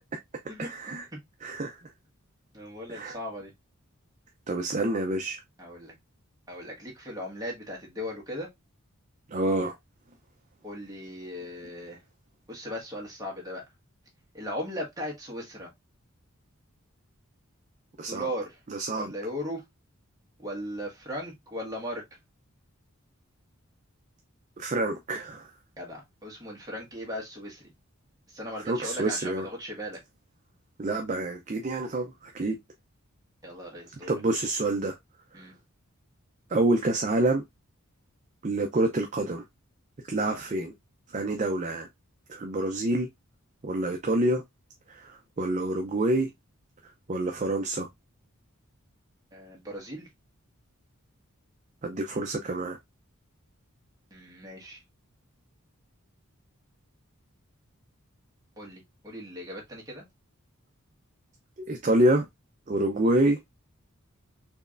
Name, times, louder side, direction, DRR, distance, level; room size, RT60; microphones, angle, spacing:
voice 1, 0.6-1.0 1.4-1.9 2.9-3.2 4.5-5.4 9.3-9.8 18.0-18.3 18.7-19.1 24.6-25.5 28.6-29.5 30.8-32.6 34.1-35.0 35.3-35.5 36.5-37.4 38.4-39.4 40.1-40.7 41.1-41.9 42.3-43.1 43.6-44.4 44.9-46.3 46.8-47.9 51.8-52.8 61.6-62.3 62.7-63.4, right 1 dB, 35° right, 0.5 m, -27 dB
voice 2, 2.5-3.5 5.6-5.9 6.5-8.5 10.6-12.0 12.5-13.6 14.3-15.7 18.1-18.6 18.9-19.6 20.4-22.2 25.8-27.7 28.3-30.0 33.4-34.1 35.3-35.5 40.2-40.4 49.3-50.1 54.1-54.8 58.6-60.0, equal, 15° right, 1.4 m, -38 dB
4.5 x 3.1 x 2.4 m
head